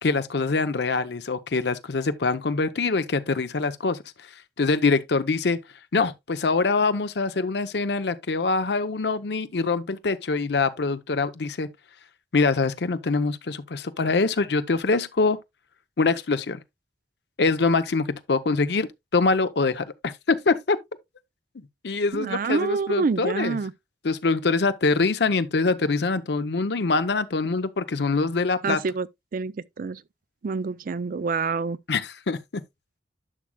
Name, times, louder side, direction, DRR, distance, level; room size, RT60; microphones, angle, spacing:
voice 1, 0.0-4.0 4.6-5.6 5.9-11.7 12.3-15.4 16.0-16.6 17.4-20.8 21.8-23.6 24.0-28.8 31.9-32.4, left 4 dB, 70° left, 0.7 m, -24 dB
voice 2, 22.1-23.7 28.6-29.1 29.3-30.0 30.4-31.8, right 4 dB, 50° right, 0.4 m, -27 dB
11.0 x 6.2 x 2.2 m
head